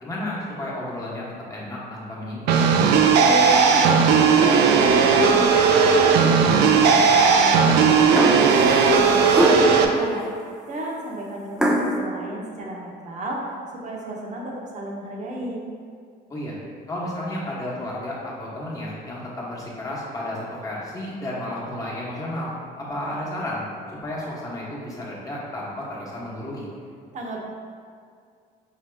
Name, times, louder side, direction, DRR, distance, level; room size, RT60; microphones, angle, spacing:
voice 1, 0.0-1.2 1.5-2.7 7.0-7.1 16.3-16.6 16.9-23.6 23.9-26.7, left 1 dB, 20° left, -6 dB, 1.1 m, -32 dB
sound 1, 2.5-9.8, right 5 dB, 80° right, 0.4 m, -16 dB
voice 2, 3.2-6.4 6.8-10.3 10.7-13.5 13.8-15.6 27.1-27.4, right 1 dB, 45° right, -2 dB, 0.9 m, -33 dB
sound 2, 8.2-8.6 9.3-9.8 11.6-12.0, equal, 5° right, 0.4 m, -21 dB
5.0 x 2.8 x 3.4 m, 2.2 s
cardioid pair, 110°, 17 cm